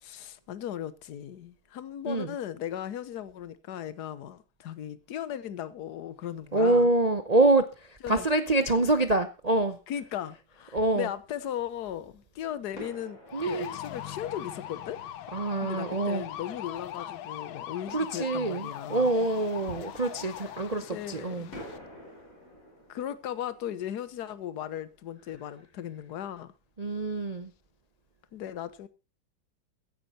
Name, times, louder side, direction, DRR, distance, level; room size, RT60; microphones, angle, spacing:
voice 1, 0.0-6.9 8.0-8.3 9.9-15.0 15.6-19.1 20.9-21.5 22.9-26.5 28.3-28.9, left 10 dB, 60° left, 1.4 m, -37 dB
voice 2, 6.5-9.8 10.7-11.1 13.3-13.8 15.3-16.3 17.9-21.5 26.8-27.5, right 2 dB, 65° right, 0.4 m, -26 dB
Fireworks, 10.7-11.9 12.7-16.2 19.7-21.1 21.5-26.1 26.3-26.4 26.9-27.1, left 1 dB, 40° left, 5.1 m, -50 dB
sound 1, 13.3-21.8, left 11 dB, 80° left, 1.7 m, -41 dB
16.0 x 10.0 x 4.3 m
omnidirectional pair, 2.2 m